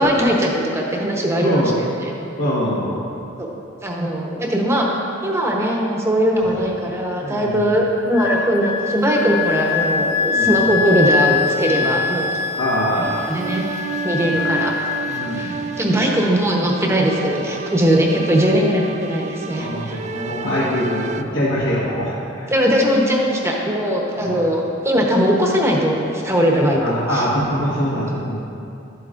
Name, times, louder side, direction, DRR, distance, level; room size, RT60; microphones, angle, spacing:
voice 1, 0.0-1.6 3.4-3.5 3.8-4.9 5.2-12.3 12.9-13.6 14.0-14.7 15.4-20.0 22.5-26.8 27.1-27.3, equal, 15° right, -1 dB, 0.9 m, -19 dB
voice 2, 1.4-1.7 2.4-3.0 7.2-7.7 10.3-10.5 12.5-13.2 14.3-14.5 15.1-15.6 19.5-22.5 24.1-24.4 26.8-28.5, equal, 80° left, -9 dB, 1.5 m, -23 dB
Wind instrument woodwind instrument, 8.1-15.6, left 5 dB, 55° left, 0.4 m, -23 dB
sound 1, 13.0-21.2, right 6 dB, 35° right, 0.3 m, -32 dB
11.5 x 8.0 x 2.5 m, 2.7 s
head